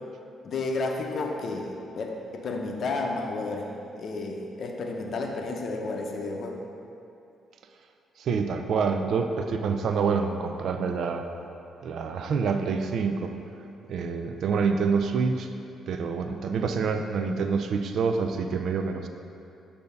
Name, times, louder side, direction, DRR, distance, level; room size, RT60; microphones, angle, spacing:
voice 1, 0.4-6.6, left 3 dB, 55° left, 1 dB, 0.6 m, -32 dB
voice 2, 8.2-11.3 11.8-13.3 13.9-15.5 15.9-19.1, right 5 dB, 65° right, 6 dB, 0.4 m, -27 dB
6.7 x 2.7 x 5.2 m, 2.7 s
cardioid pair, 90°, 0 cm